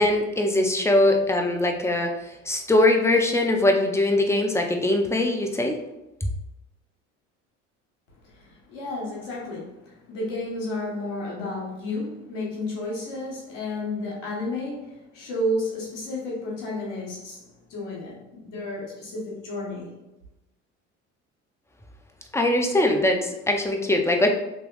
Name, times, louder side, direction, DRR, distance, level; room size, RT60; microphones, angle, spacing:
voice 1, 0.0-5.8 6.2-6.3 22.3-24.3, left 1 dB, 10° left, 2 dB, 0.5 m, -22 dB
voice 2, 8.2-17.4 17.7-19.9, left 1 dB, 85° left, -4 dB, 1.3 m, -32 dB
3.4 x 2.9 x 2.3 m, 0.95 s
hypercardioid pair, 60°, 36 cm